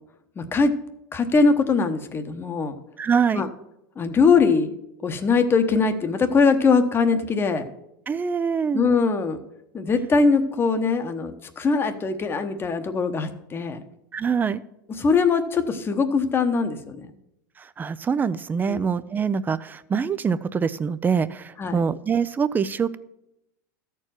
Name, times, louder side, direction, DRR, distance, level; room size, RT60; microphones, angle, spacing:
voice 1, 0.4-0.7 1.1-2.7 3.3-3.5 4.0-4.7 5.0-7.6 8.7-9.4 9.7-13.8 15.0-17.1 18.7-18.8 21.6-21.8, left 4 dB, 20° left, 8 dB, 1.0 m, -21 dB
voice 2, 3.0-3.4 8.1-8.8 14.1-14.6 17.6-23.0, right 6 dB, 15° right, 15 dB, 0.5 m, -24 dB
13.0 x 4.6 x 7.4 m, 0.84 s
supercardioid pair, 120°, 11 cm